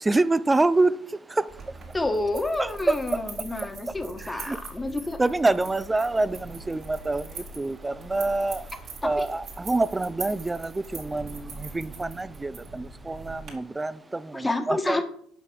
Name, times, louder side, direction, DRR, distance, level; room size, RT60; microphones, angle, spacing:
voice 1, 0.0-1.8 2.6-3.5 3.9-4.6 5.2-15.0, right 2 dB, 15° right, 0.5 m, -27 dB
sound 1, 1.5-13.5, right 3 dB, 55° right, 3.0 m, -42 dB
voice 2, 1.9-5.2 9.0-9.2 14.3-15.0, left 2 dB, 15° left, 1.5 m, -29 dB
8.3 x 5.8 x 6.2 m
hypercardioid pair, 70°, 0 cm